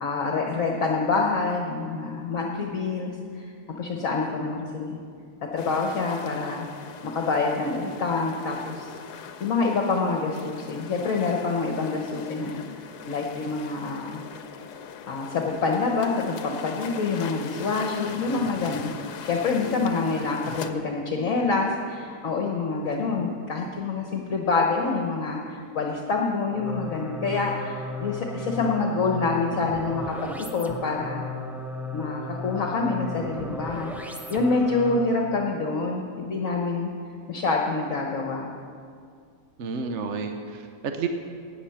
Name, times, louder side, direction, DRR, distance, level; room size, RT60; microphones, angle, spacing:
voice 1, 0.0-5.0 5.4-6.7 7.0-8.9 9.4-14.2 15.1-31.2 31.9-36.9 37.3-38.4, left 4 dB, 60° left, 1 dB, 1.4 m, -27 dB
sound 1, 5.6-20.7, left 7 dB, 80° left, 1.3 m, -41 dB
sound 2, 26.5-35.3, left 2 dB, ahead, 0.4 m, -35 dB
voice 2, 39.6-41.1, right 5 dB, 55° right, 5 dB, 1.0 m, -31 dB
16.5 x 9.9 x 5.8 m, 2.2 s
omnidirectional pair, 1.7 m